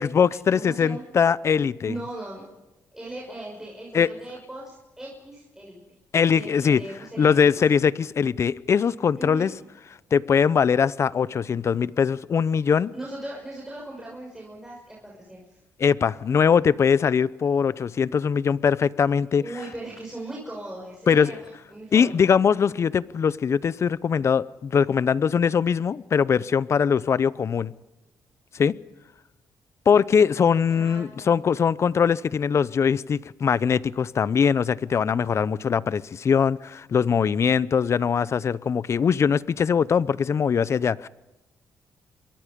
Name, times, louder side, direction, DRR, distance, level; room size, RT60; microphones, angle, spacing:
voice 1, 0.0-1.9 3.9-4.1 6.1-6.8 7.2-9.5 10.1-12.9 15.8-19.4 21.1-21.4 21.9-27.7 28.5-28.8 29.9-41.1, left 6 dB, 45° left, 19 dB, 0.7 m, -21 dB
voice 2, 0.5-1.0 1.8-2.5 2.9-5.8 6.3-7.6 9.2-9.5 12.6-15.6 19.4-22.1 30.7-31.4, right 1 dB, 10° right, -3 dB, 6.0 m, -39 dB
27.5 x 22.5 x 5.3 m, 1.0 s
cardioid pair, 90°, 6 cm